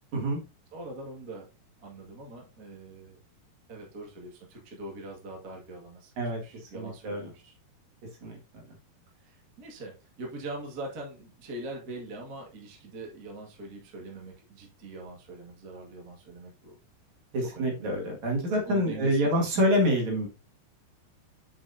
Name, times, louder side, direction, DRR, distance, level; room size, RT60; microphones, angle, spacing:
voice 1, 0.7-1.5 1.8-3.2 3.7-7.5 9.2-16.8 17.5-17.9 18.6-19.2, right 2 dB, 35° right, -1 dB, 1.6 m, -42 dB
voice 2, 6.2-7.3 8.2-8.4 17.3-20.3, equal, 50° right, 0 dB, 2.9 m, -27 dB
7.9 x 7.2 x 2.7 m, 0.30 s
omnidirectional pair, 4.7 m